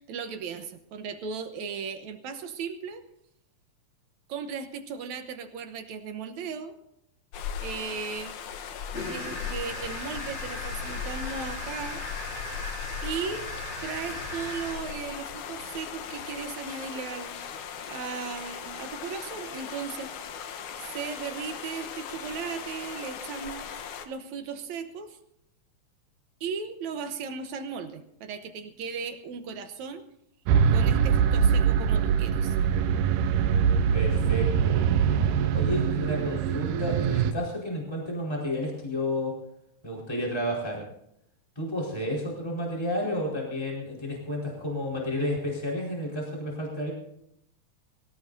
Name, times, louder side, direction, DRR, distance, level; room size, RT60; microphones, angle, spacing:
voice 1, 0.0-3.0 4.3-6.7 7.6-8.4 9.1-12.0 13.0-13.5 13.8-20.1 20.9-25.2 26.4-30.0 30.7-32.6, right 6 dB, 75° right, 8 dB, 2.3 m, -36 dB
sound 1, 7.3-24.1, left 7 dB, 80° left, 2.6 m, -38 dB
sound 2, 8.9-14.7, left 1 dB, 50° left, 6.6 m, -38 dB
sound 3, 30.5-37.3, right 7 dB, 90° right, 2.2 m, -23 dB
voice 2, 33.9-34.8 35.5-39.3 39.8-40.8 41.5-46.9, left 1 dB, 10° left, -3 dB, 4.5 m, -31 dB
23.0 x 17.5 x 2.7 m, 0.76 s
omnidirectional pair, 3.5 m